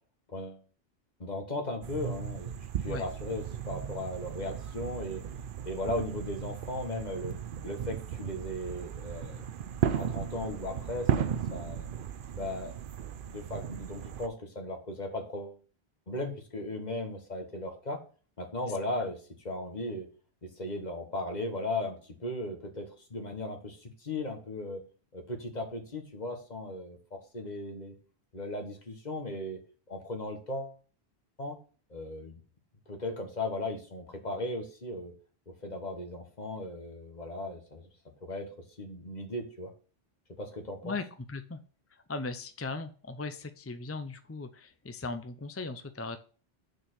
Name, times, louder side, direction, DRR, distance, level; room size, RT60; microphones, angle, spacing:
voice 1, 1.2-2.5 2.8-5.2 5.6-7.4 7.6-9.4 9.9-11.9 12.4-12.7 13.2-15.6 16.1-18.0 18.4-20.1 20.4-24.8 25.1-27.9 28.3-29.6 29.9-30.8 31.4-31.6 31.9-32.3 32.9-35.1 35.5-37.9 38.2-38.5 38.8-39.7 40.4-41.0, left 1 dB, 45° left, 4 dB, 1.7 m, -37 dB
sound 1, 1.8-14.3, right 8 dB, 60° right, 0.7 m, -35 dB
voice 2, 40.8-41.6 41.9-46.2, left 3 dB, 20° left, 9 dB, 0.4 m, -38 dB
6.6 x 4.6 x 6.2 m, 0.38 s
omnidirectional pair, 1.1 m